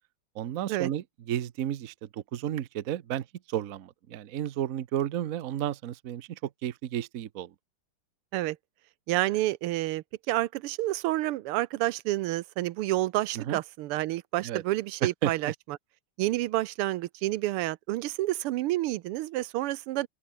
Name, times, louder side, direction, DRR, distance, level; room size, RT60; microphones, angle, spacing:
voice 1, 0.3-7.5 13.4-13.6 14.4-14.6 15.0-15.5, right 11 dB, 55° right, 1.0 m, -32 dB
voice 2, 9.1-15.5 16.2-20.1, right 16 dB, 90° right, 1.6 m, -29 dB
open air
omnidirectional pair, 2.4 m